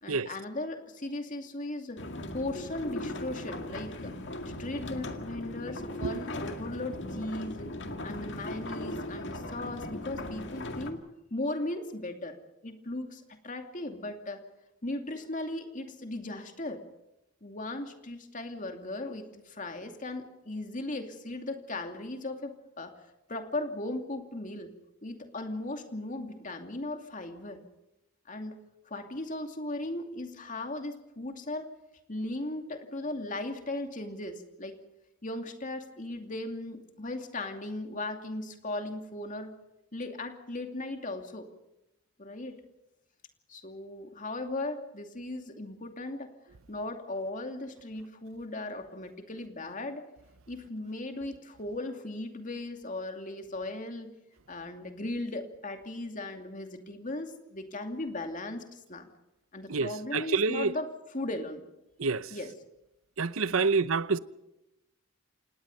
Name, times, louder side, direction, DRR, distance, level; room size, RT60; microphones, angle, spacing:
voice 1, 0.0-2.0 2.3-4.1 4.6-7.7 8.0-11.0 11.3-12.4 12.6-14.4 14.8-16.8 17.4-22.9 23.3-24.7 25.0-27.6 28.3-28.6 28.9-31.7 32.1-34.8 35.2-39.5 39.9-41.5 42.2-42.6 43.5-46.3 46.7-50.0 50.5-54.1 54.5-59.1 59.5-60.9 61.1-61.6 62.3-62.5 63.6-63.7, left 2 dB, 40° left, 2.5 m, -37 dB
sound 1, 2.0-10.9, left 1 dB, 55° left, 2.1 m, -38 dB
voice 2, 59.7-60.7 62.0-62.3 63.2-64.2, right 4 dB, 75° right, 0.8 m, -28 dB
27.0 x 19.5 x 5.5 m
head